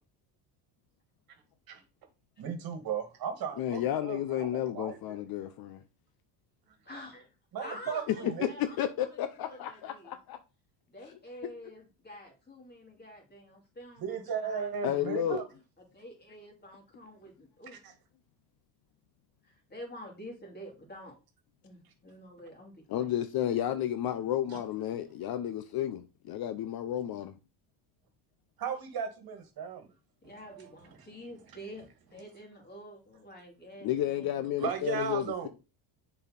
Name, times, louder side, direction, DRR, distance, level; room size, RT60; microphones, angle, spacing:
voice 1, 2.4-5.2 7.5-8.5 14.0-15.4 17.8-17.9 24.5-24.6 28.6-29.9 30.2-30.7 31.0-31.1 34.6-35.5, right 7 dB, 50° right, 1.9 m, -36 dB
voice 2, 3.6-5.8 8.1-10.4 11.4-11.5 14.8-15.4 22.9-27.4 33.8-35.5, left 11 dB, 50° left, 0.7 m, -32 dB
voice 3, 6.8-7.2 7.6-8.8 9.0-10.1 10.9-15.4 15.9-17.8 19.4-21.2 21.6-23.1 30.2-34.5, equal, 20° left, 3.2 m, -48 dB
6.8 x 4.6 x 4.1 m
cardioid pair, 115°, 46 cm